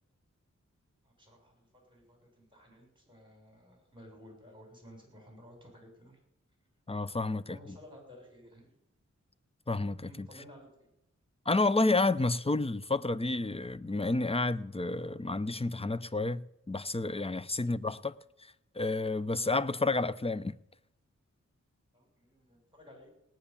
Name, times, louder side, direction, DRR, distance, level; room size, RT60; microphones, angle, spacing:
voice 1, 1.0-6.2 7.1-8.7 10.0-10.9 17.3-17.6 21.9-23.1, equal, 15° right, 6.8 m, -55 dB
voice 2, 6.9-7.8 9.7-10.3 11.5-18.1 18.7-20.6, left 2 dB, 20° left, 0.6 m, -30 dB
18.0 x 9.1 x 7.1 m
wide cardioid pair, 65°, 29 cm